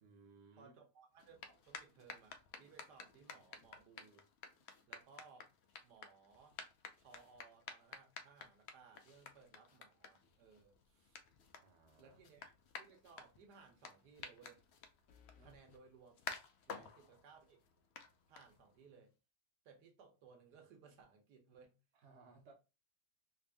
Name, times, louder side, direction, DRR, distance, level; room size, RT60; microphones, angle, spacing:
voice 1, 0.0-0.8 11.6-12.2 15.4-15.5 16.7-17.1 21.9-22.5, right 4 dB, 55° right, 0.9 m, -63 dB
voice 2, 0.6-4.3 4.9-5.5 5.8-6.6 7.0-11.2 11.9-14.6 15.3-16.4 16.7-17.6 18.3-19.1 19.6-21.7, right 5 dB, 80° right, 1.5 m, -62 dB
sound 1, 1.2-18.9, left 6 dB, 90° left, 0.5 m, -54 dB
sound 2, 12.1-12.4 12.8-12.9 15.1-15.6, left 6 dB, 65° left, 0.9 m, -65 dB
3.5 x 2.5 x 3.3 m
omnidirectional pair, 1.7 m